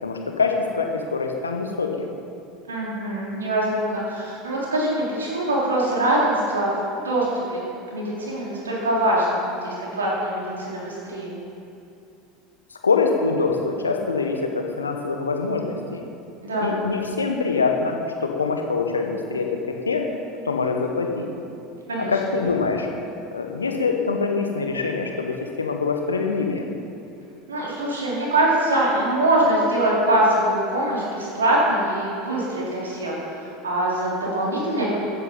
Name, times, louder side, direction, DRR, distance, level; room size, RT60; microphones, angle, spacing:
voice 1, 0.0-1.9 12.8-16.0 16.6-20.0 20.4-21.3 22.1-22.9 23.3-26.6, left 4 dB, 80° left, 3 dB, 1.3 m, -24 dB
voice 2, 2.7-6.7 7.0-7.6 7.9-11.3 16.4-16.7 21.9-22.1 27.5-34.9, right 1 dB, 75° right, -5 dB, 3.9 m, -23 dB
15.0 x 9.9 x 5.5 m, 2.7 s
figure-of-eight pair, 75°, 0 cm